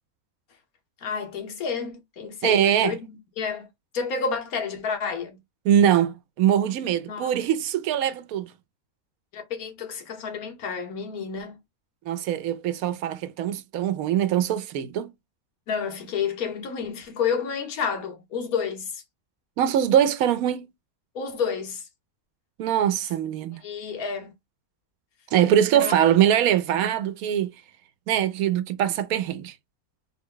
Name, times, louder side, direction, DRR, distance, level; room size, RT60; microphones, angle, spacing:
voice 1, 1.0-3.7 3.9-5.4 7.1-7.3 9.3-11.6 15.7-19.0 21.1-21.8 23.6-24.3 25.7-26.0, left 6 dB, 80° left, 1.4 m, -30 dB
voice 2, 2.4-3.0 5.6-8.5 12.1-15.1 19.6-20.7 22.6-23.6 25.3-27.5 28.1-29.5, right 10 dB, 80° right, 1.0 m, -22 dB
4.1 x 2.1 x 3.7 m
omnidirectional pair, 1.5 m